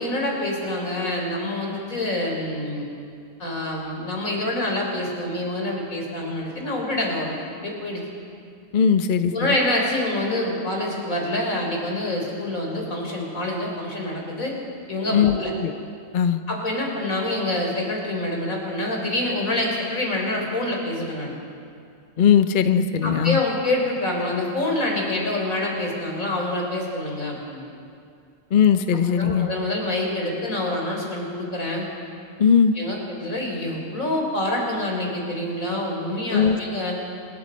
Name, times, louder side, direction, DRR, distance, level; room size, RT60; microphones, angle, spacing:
voice 1, 0.0-2.9 3.4-8.0 9.3-14.5 14.9-15.5 16.5-21.3 23.0-27.6 29.1-31.9 32.7-36.9, left 1 dB, 80° left, 0 dB, 4.7 m, -26 dB
voice 2, 8.7-9.5 15.1-15.7 16.1-16.4 22.2-23.4 28.5-29.5 32.4-32.7 36.3-36.6, left 7 dB, 45° left, 9 dB, 0.8 m, -19 dB
26.0 x 21.5 x 5.3 m, 2.4 s
omnidirectional pair, 1.4 m